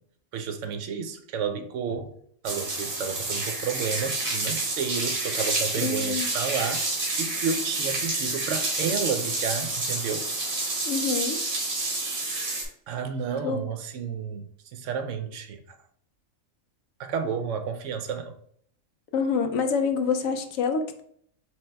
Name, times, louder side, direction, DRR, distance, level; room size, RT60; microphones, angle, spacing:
voice 1, 0.3-2.1 2.4-6.9 7.2-10.3 12.9-14.4 14.7-15.6 17.0-18.3, right 6 dB, 70° right, 0.9 m, -31 dB
sound 1, 2.4-12.6, right 2 dB, 45° right, 1.2 m, -29 dB
voice 2, 5.8-6.3 10.9-11.4 13.4-13.6 19.1-21.0, left 5 dB, 80° left, 1.0 m, -26 dB
4.4 x 3.2 x 3.3 m
omnidirectional pair, 1.4 m